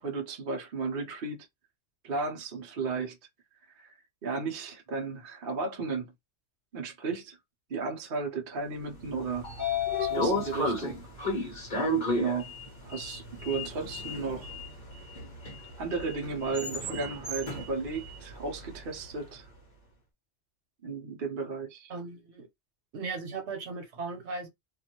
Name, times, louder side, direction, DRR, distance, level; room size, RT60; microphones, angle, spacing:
voice 1, 0.0-1.5 2.0-3.2 3.7-6.1 6.7-7.4 7.7-9.5 10.0-11.0 12.1-12.5 12.8-14.5 15.8-19.5 20.8-21.9, right 4 dB, 55° right, 0.9 m, -34 dB
Sliding door, 9.0-19.2, left 2 dB, 45° left, 1.2 m, -33 dB
voice 2, 21.9-22.5 22.9-24.5, right 4 dB, 80° right, 1.2 m, -37 dB
2.6 x 2.6 x 2.9 m
omnidirectional pair, 1.1 m